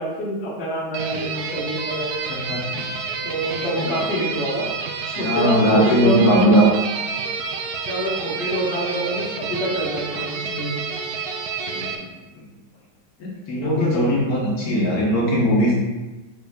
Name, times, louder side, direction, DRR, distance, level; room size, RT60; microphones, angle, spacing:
voice 1, 0.0-2.3 3.2-4.7 5.2-6.8 7.9-10.8 13.5-14.0, right 1 dB, 40° left, -4 dB, 1.1 m, -26 dB
sound 1, 0.9-12.0, right 5 dB, 85° right, 0.8 m, -29 dB
voice 2, 2.3-2.8 3.8-3.9 5.1-6.7 11.7-12.1 13.2-15.8, equal, 55° left, -4 dB, 1.2 m, -20 dB
4.9 x 4.5 x 2.3 m, 1.2 s
omnidirectional pair, 2.2 m